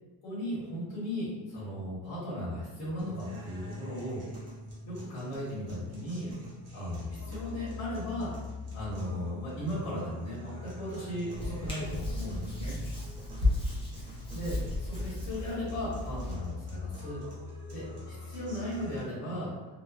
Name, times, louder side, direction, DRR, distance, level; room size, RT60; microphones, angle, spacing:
voice 1, 0.2-4.2 4.9-6.3 6.7-8.3 8.7-12.8 14.3-17.2 17.7-19.5, equal, 65° left, -10 dB, 1.2 m, -36 dB
sound 1, 3.0-19.0, left 2 dB, 35° right, 0.8 m, -44 dB
Hands, 11.3-16.3, left 2 dB, 15° left, 0.4 m, -34 dB
2.9 x 2.2 x 2.3 m, 1.2 s
cardioid pair, 160°, 42 cm